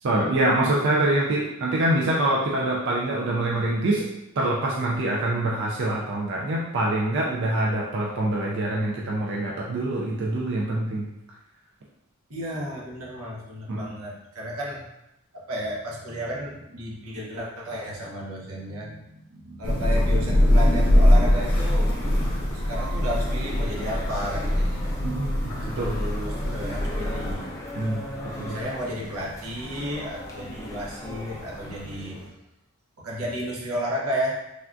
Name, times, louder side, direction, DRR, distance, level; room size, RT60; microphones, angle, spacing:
voice 1, 0.0-4.0 4.4-11.1 13.7-13.9 25.0-26.0 27.7-28.6, right 1 dB, 55° right, -3 dB, 0.3 m, -25 dB
voice 2, 12.3-14.8 15.3-21.9 22.6-25.0 25.7-27.5 28.5-32.2 33.0-34.4, equal, 90° right, -3 dB, 0.8 m, -33 dB
Thunder / Rain, 19.6-27.3, left 1 dB, 80° left, 0.7 m, -22 dB
sound 1, 20.7-32.3, equal, 15° left, 0.4 m, -38 dB
3.4 x 2.3 x 2.5 m, 0.90 s
head